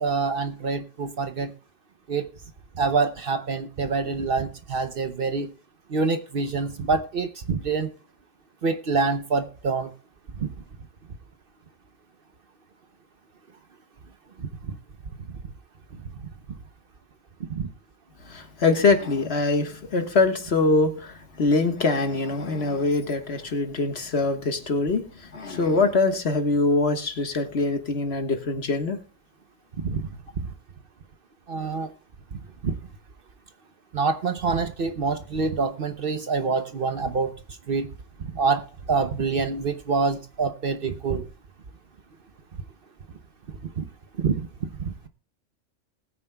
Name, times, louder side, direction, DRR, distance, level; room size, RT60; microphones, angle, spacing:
voice 1, 0.0-1.5 2.1-2.3 2.8-5.5 5.9-7.9 8.6-9.9 10.4-10.5 29.8-30.0 31.5-31.9 32.6-32.7 33.9-37.3 37.7-37.9 38.3-38.6 38.9-41.2 43.8-43.9 44.2-44.4, right 4 dB, 50° right, 0.9 m, -26 dB
voice 2, 18.3-29.0, left 3 dB, 55° left, 1.6 m, -23 dB
20.0 x 9.3 x 2.3 m
omnidirectional pair, 1.3 m